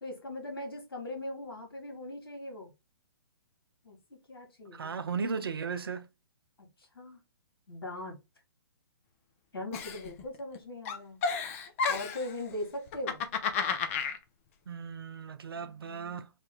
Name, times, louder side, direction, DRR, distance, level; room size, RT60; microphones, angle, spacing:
voice 1, 0.0-2.7 3.8-5.0 6.6-6.7 6.9-7.2 7.7-8.1 9.5-11.2 11.9-13.2 15.5-16.2, left 1 dB, 70° left, 1.6 m, -40 dB
voice 2, 4.7-6.1 14.7-16.3, right 5 dB, 70° right, 0.5 m, -36 dB
Giggle, 9.7-10.6 10.9-12.3 12.9-14.2, left 5 dB, 35° left, 0.5 m, -32 dB
3.1 x 2.1 x 3.4 m
figure-of-eight pair, 125°, 13 cm